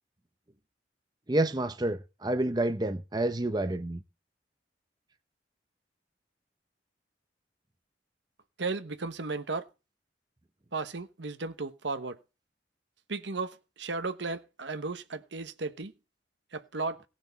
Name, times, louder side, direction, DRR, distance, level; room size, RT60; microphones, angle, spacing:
voice 1, 1.3-4.0, right 1 dB, 20° right, 0.7 m, -29 dB
voice 2, 8.6-9.7 10.7-12.2 13.1-15.9 16.5-17.0, right 3 dB, 75° right, 1.1 m, -35 dB
18.0 x 6.4 x 4.0 m
head